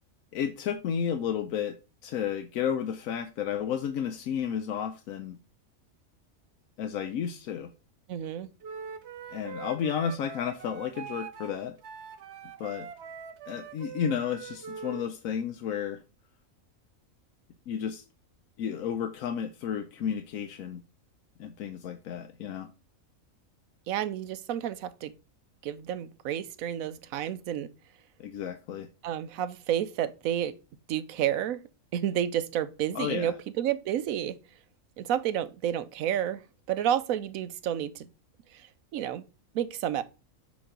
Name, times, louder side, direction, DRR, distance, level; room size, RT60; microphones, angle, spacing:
voice 1, 0.3-1.7 2.0-5.4 6.8-7.7 9.3-11.7 12.6-12.9 13.5-16.0 17.7-18.0 18.6-20.8 21.4-22.7 28.2-28.9 32.9-33.3, left 8 dB, 85° left, 1.0 m, -32 dB
voice 2, 8.1-8.5 23.9-25.1 25.6-27.7 29.0-30.5 30.9-31.6 31.9-34.4 35.0-36.4 36.7-38.1 38.5-38.7 38.9-39.2 39.5-40.0, right 10 dB, 90° right, 1.1 m, -30 dB
Wind instrument woodwind instrument, 8.6-15.1, right 6 dB, 60° right, 1.0 m, -42 dB
7.1 x 3.1 x 4.9 m
omnidirectional pair, 1.4 m